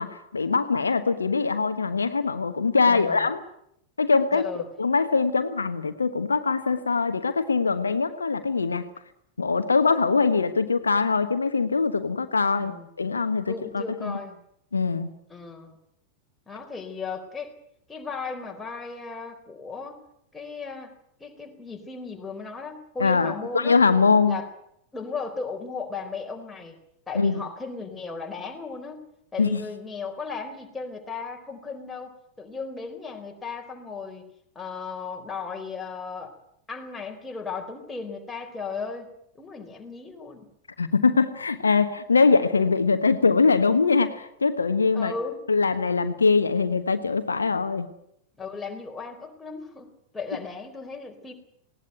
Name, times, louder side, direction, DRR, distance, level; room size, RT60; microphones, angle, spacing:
voice 1, 0.0-3.4 4.0-4.4 4.8-8.8 9.4-12.7 13.0-14.2 14.7-15.1 23.0-24.4 27.1-27.4 29.4-29.6 40.8-45.1 45.5-47.9, left 4 dB, 75° left, 9 dB, 1.2 m, -22 dB
voice 2, 2.9-3.3 4.3-4.7 12.5-12.9 13.5-14.4 15.3-15.8 16.5-17.5 17.9-20.0 20.3-20.9 21.2-23.8 24.3-24.5 24.9-26.8 27.1-29.1 29.3-32.1 32.4-34.2 34.6-36.4 36.7-39.1 39.3-40.5 44.9-45.4 48.4-51.3, left 4 dB, 10° left, 2 dB, 4.0 m, -36 dB
19.5 x 18.0 x 9.2 m, 0.73 s
figure-of-eight pair, 90°, 0 cm